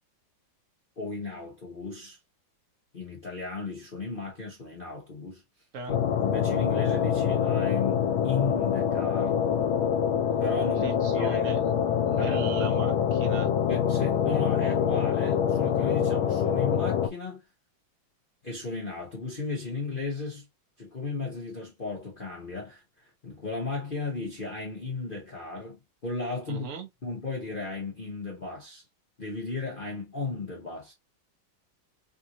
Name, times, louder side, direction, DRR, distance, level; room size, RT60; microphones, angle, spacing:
voice 1, 1.0-2.2 2.9-5.4 6.2-9.4 10.4-11.6 12.2-12.5 13.7-17.4 18.4-20.5 20.8-26.7 27.0-28.8 29.2-30.9, left 3 dB, 40° left, 0.7 m, -35 dB
sound 1, 5.9-17.1, left 8 dB, 80° left, 1.4 m, -25 dB
voice 2, 10.8-11.6 12.1-13.5 26.5-26.9, right 5 dB, 55° right, 0.9 m, -37 dB
3.5 x 2.6 x 2.8 m
omnidirectional pair, 2.2 m